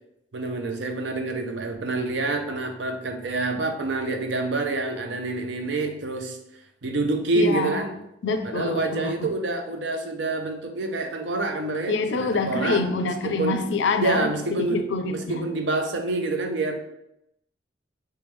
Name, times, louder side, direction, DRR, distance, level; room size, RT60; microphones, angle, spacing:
voice 1, 0.3-6.4 6.8-7.9 8.4-12.8 13.2-13.6 14.0-14.8 15.1-16.8, right 3 dB, 65° right, 5 dB, 0.5 m, -27 dB
voice 2, 7.3-7.9 8.2-9.3 11.9-15.5, left 3 dB, 75° left, 8 dB, 0.4 m, -26 dB
3.2 x 3.1 x 3.5 m, 0.81 s
head